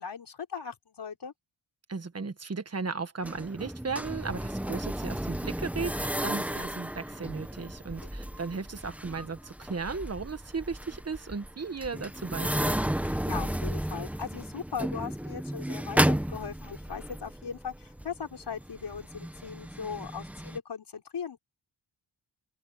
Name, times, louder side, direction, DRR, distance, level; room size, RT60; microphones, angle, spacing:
voice 1, 0.0-1.3 7.9-8.1 13.1-21.4, left 6 dB, 60° left, 4.1 m, -39 dB
voice 2, 1.9-12.8, right 4 dB, 30° right, 1.4 m, -36 dB
sound 1, 3.2-20.6, right 1 dB, 5° right, 1.1 m, -33 dB
open air
wide cardioid pair, 120°, 47 cm